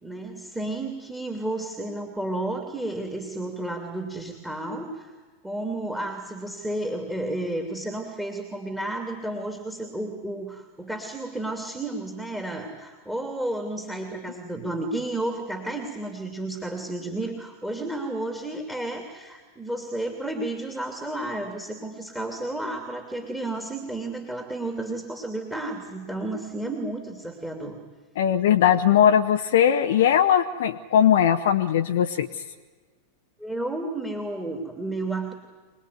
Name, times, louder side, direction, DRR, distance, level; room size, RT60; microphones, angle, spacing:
voice 1, 0.0-5.1 5.4-27.8 33.4-35.3, right 2 dB, 5° right, 5 dB, 2.8 m, -32 dB
voice 2, 28.2-32.3, left 9 dB, 55° left, 5 dB, 0.9 m, -19 dB
26.0 x 19.5 x 9.5 m, 1.4 s
figure-of-eight pair, 90°, 0 cm